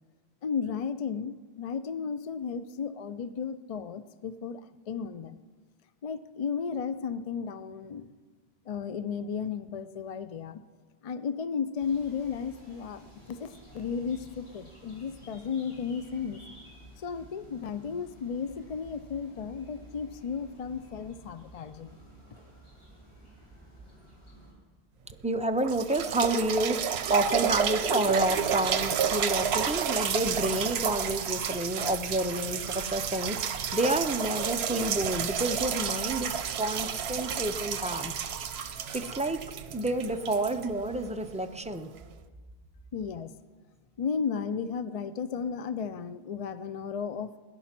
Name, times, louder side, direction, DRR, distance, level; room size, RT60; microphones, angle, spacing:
voice 1, 0.4-5.4 6.0-8.0 8.7-10.6 11.0-16.4 17.0-22.0 42.9-43.3 44.0-47.3, left 6 dB, 50° left, 12 dB, 0.4 m, -34 dB
sound 1, 11.8-24.5, right 1 dB, 25° left, 3.8 m, -53 dB
sound 2, 25.1-25.2 25.6-41.3 42.0-42.1, right 7 dB, 75° right, 1.0 m, -31 dB
voice 2, 25.2-38.1 38.9-39.4 39.7-41.9, right 1 dB, 10° right, 6 dB, 0.5 m, -29 dB
18.0 x 10.5 x 5.9 m, 1.4 s
omnidirectional pair, 1.1 m